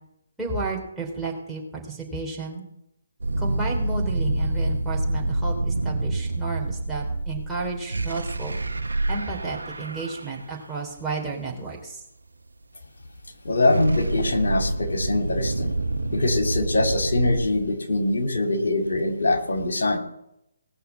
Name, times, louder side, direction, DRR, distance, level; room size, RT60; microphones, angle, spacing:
voice 1, 0.4-2.6 3.4-8.6 9.1-12.0, right 3 dB, 5° right, -4 dB, 3.5 m, -32 dB
sound 1, 3.2-10.4 13.2-17.6, right 2 dB, 90° right, 0.9 m, -27 dB
voice 2, 13.4-15.7 16.1-20.0, left 2 dB, 75° left, 4 dB, 2.5 m, -23 dB
18.5 x 6.7 x 7.3 m, 0.81 s
hypercardioid pair, 150°, 0 cm